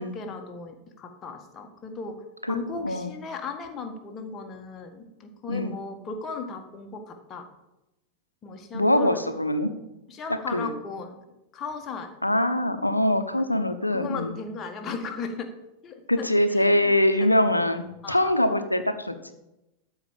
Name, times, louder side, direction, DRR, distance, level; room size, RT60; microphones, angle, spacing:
voice 1, 0.0-7.5 8.4-9.2 10.1-11.2 11.5-12.1 13.4-13.5 13.9-15.5 15.8-17.3 18.0-18.2, left 4 dB, 25° left, 5 dB, 1.7 m, -36 dB
voice 2, 8.7-9.7 10.5-10.7 12.2-14.3 16.1-19.3, left 1 dB, 85° left, 9 dB, 0.9 m, -23 dB
13.0 x 5.0 x 7.4 m, 0.94 s
figure-of-eight pair, 90°, 0 cm